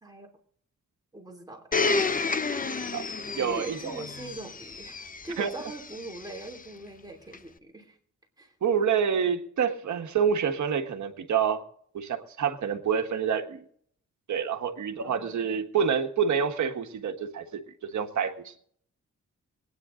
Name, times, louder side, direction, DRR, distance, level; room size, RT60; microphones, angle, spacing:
voice 1, 1.1-1.7 3.4-8.0 8.4-8.5 15.0-15.6, right 2 dB, 15° right, 1 dB, 2.9 m, -42 dB
Domestic sounds home sounds, 1.7-6.6 7.3-7.4, left 4 dB, 30° left, 0.8 m, -31 dB
voice 2, 2.6-3.0 3.3-4.0 5.4-5.5 8.6-11.6 11.9-13.6 14.3-18.6, right 7 dB, 80° right, 5 dB, 1.6 m, -28 dB
22.5 x 9.6 x 3.8 m, 0.63 s
wide cardioid pair, 130°, 29 cm